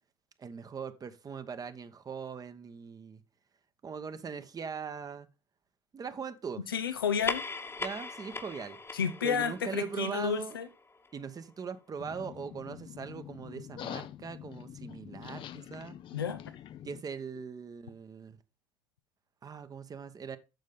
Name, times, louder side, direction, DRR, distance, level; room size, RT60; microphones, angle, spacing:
voice 1, 0.4-3.2 3.8-5.3 5.9-6.6 7.8-8.8 9.2-10.6 11.1-15.9 16.8-18.4 19.4-20.4, right 6 dB, 30° right, 1.1 m, -40 dB
voice 2, 6.7-7.4 8.9-10.7 16.1-16.4, left 7 dB, 85° left, 0.6 m, -31 dB
sound 1, 7.0-11.9, left 3 dB, 20° left, 1.2 m, -41 dB
sound 2, 12.0-17.0, left 11 dB, 45° left, 0.6 m, -45 dB
9.1 x 6.5 x 3.6 m
hypercardioid pair, 60°, 12 cm